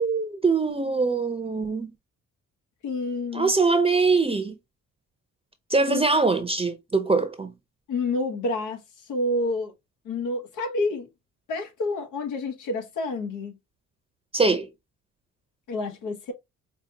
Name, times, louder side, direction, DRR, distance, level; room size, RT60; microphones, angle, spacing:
voice 1, 0.0-1.9 3.3-4.5 5.7-7.5 14.3-14.7, right 4 dB, 20° right, 0.7 m, -23 dB
voice 2, 2.8-3.5 5.9-6.0 7.9-8.8 9.1-9.7 10.0-11.1 11.5-13.5 15.7-16.3, left 2 dB, 85° left, 1.4 m, -28 dB
5.1 x 2.3 x 2.8 m
cardioid pair, 90°, 30 cm